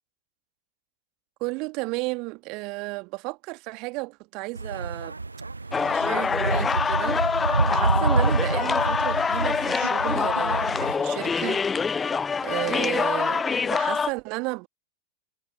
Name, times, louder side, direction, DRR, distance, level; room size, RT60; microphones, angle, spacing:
voice 1, 1.4-5.2 5.9-7.2 7.7-12.1 12.4-14.7, right 27 dB, 40° right, 1.7 m, -33 dB
sound 1, 4.6-10.9, right 3 dB, 80° right, 0.4 m, -28 dB
sound 2, 5.7-14.1, left 5 dB, 15° left, 0.3 m, -25 dB
figure-of-eight pair, 90°, 0 cm